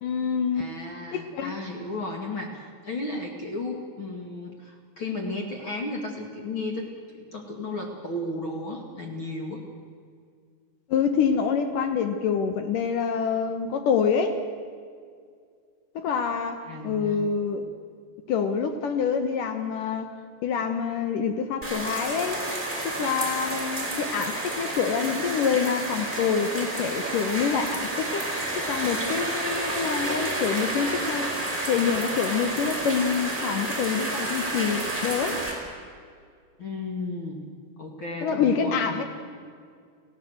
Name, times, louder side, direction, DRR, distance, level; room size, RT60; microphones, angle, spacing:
voice 1, 0.0-0.7 1.1-1.5 10.9-14.4 16.0-17.7 18.3-20.1 20.4-22.4 22.8-28.3 28.5-31.3 31.7-35.4 38.2-39.0, left 6 dB, 70° left, 8 dB, 2.1 m, -26 dB
voice 2, 0.6-6.9 7.1-9.6 16.7-17.2 36.6-37.4 37.8-39.0, left 2 dB, 40° left, 2 dB, 1.9 m, -34 dB
sound 1, 21.6-35.5, right 2 dB, 5° left, 5.1 m, -30 dB
29.5 x 16.5 x 7.9 m, 2.1 s
omnidirectional pair, 5.0 m